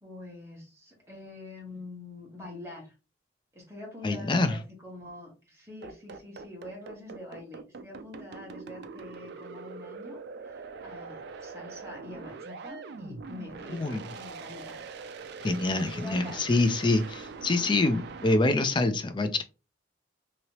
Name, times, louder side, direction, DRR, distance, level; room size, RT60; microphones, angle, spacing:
voice 1, 0.0-2.9 3.5-14.8 15.6-16.5, left 2 dB, 15° right, -2 dB, 1.2 m, -45 dB
voice 2, 4.0-4.6 13.7-14.0 15.4-19.4, left 2 dB, 25° left, 9 dB, 0.4 m, -26 dB
sound 1, 5.8-18.4, right 4 dB, 60° right, 0.4 m, -43 dB
2.9 x 2.8 x 2.9 m, 0.31 s
head